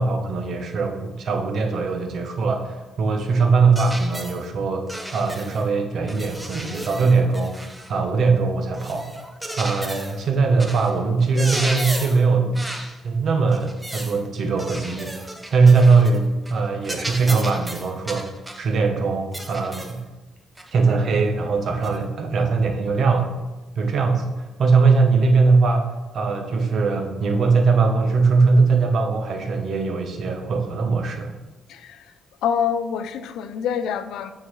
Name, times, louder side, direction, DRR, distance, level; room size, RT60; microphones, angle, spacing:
voice 1, 0.0-4.9 5.1-7.6 7.9-9.1 9.6-12.6 13.0-18.3 18.6-20.0 20.7-23.3 23.8-25.8 26.1-31.3, right 4 dB, 60° right, 5 dB, 0.8 m, -20 dB
sound 1, 3.7-4.4 4.9-5.7 6.1-8.0 8.7-10.2 10.6-10.9 11.2-12.2 12.5-12.9 13.5-14.2 14.6-16.2 16.5-16.6 16.8-18.7 19.3-20.0 20.6-20.7 21.8-22.0, right 1 dB, 10° right, 0.8 m, -33 dB
voice 2, 31.7-32.1 32.4-34.3, left 7 dB, 80° left, 11 dB, 0.4 m, -26 dB
8.8 x 3.8 x 3.1 m, 1.1 s
cardioid pair, 90°, 0 cm